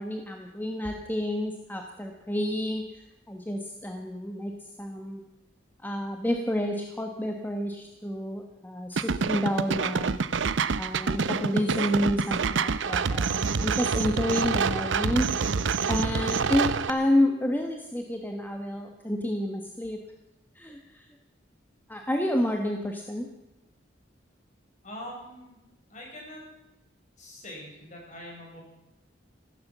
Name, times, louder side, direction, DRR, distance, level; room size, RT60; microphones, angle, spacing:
voice 1, 0.0-5.2 5.8-10.4 10.8-15.3 15.9-20.0 20.5-21.1 21.9-23.3, left 1 dB, 10° left, 3 dB, 1.2 m, -29 dB
sound 1, 9.0-16.9, right 5 dB, 75° right, 0.6 m, -27 dB
voice 2, 24.8-25.6 25.9-26.4 27.2-28.6, left 1 dB, 40° left, -1 dB, 5.8 m, -43 dB
15.0 x 12.5 x 7.3 m, 0.94 s
head